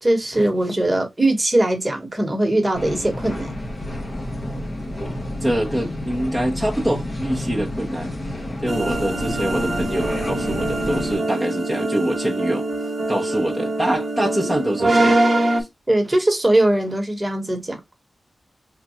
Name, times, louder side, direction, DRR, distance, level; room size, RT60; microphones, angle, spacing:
voice 1, 0.0-3.5 8.7-8.8 15.9-17.8, right 1 dB, 20° right, 1.2 m, -20 dB
sound 1, 2.7-11.2, left 1 dB, 35° left, 1.2 m, -30 dB
voice 2, 5.4-8.1 8.6-12.7 13.1-15.2, right 1 dB, 5° left, 0.9 m, -24 dB
sound 2, 8.7-15.6, right 2 dB, 40° right, 1.1 m, -23 dB
3.7 x 2.4 x 4.2 m
wide cardioid pair, 100°, 0 cm